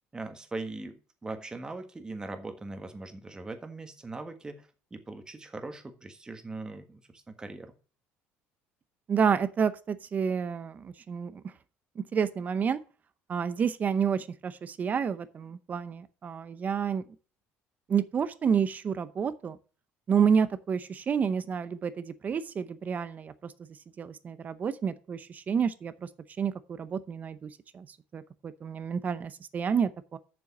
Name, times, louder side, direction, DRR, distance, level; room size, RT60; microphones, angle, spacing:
voice 1, 0.1-7.7, right 3 dB, 15° right, 1.5 m, -40 dB
voice 2, 9.1-11.4 12.0-12.8 13.3-17.0 17.9-19.6 20.1-23.5 24.0-25.9 26.4-27.9 28.1-30.2, right 7 dB, 30° right, 0.7 m, -29 dB
6.9 x 6.9 x 6.1 m
cardioid pair, 135°, 5 cm